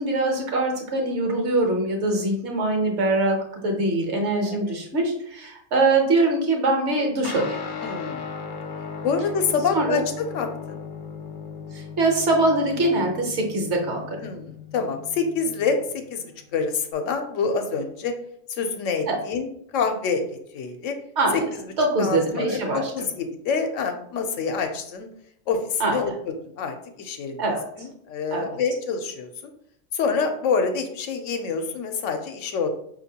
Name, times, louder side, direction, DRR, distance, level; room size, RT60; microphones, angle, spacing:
voice 1, 0.0-3.4 3.6-7.6 9.7-10.0 11.7-14.2 19.1-19.2 21.2-21.5 21.8-22.9 25.8-26.0 27.4-27.6 28.3-28.4, right 2 dB, 65° right, 1 dB, 1.2 m, -23 dB
Guitar, 7.2-16.9, left 5 dB, 60° left, 0.5 m, -37 dB
voice 2, 7.8-8.3 9.0-10.8 14.2-15.8 16.1-18.1 18.5-20.3 20.5-21.0 21.3-21.4 22.0-25.1 25.5-27.4 27.8-29.3 29.9-32.7, left 5 dB, 80° left, 6 dB, 1.0 m, -27 dB
5.1 x 2.7 x 2.8 m, 0.70 s
omnidirectional pair, 1.3 m